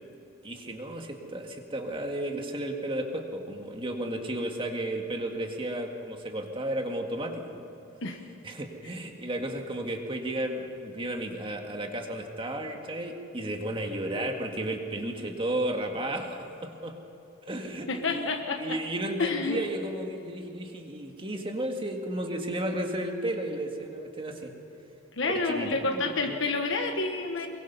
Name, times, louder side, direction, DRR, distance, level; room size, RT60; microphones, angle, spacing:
voice 1, 0.4-7.7 8.4-17.0 17.5-18.3 18.6-24.5 25.3-26.4, right 1 dB, 25° right, 3 dB, 2.0 m, -33 dB
voice 2, 17.9-18.8 19.2-19.7 25.2-27.5, left 3 dB, 60° left, 3 dB, 1.3 m, -29 dB
23.0 x 22.5 x 5.6 m, 3.0 s
head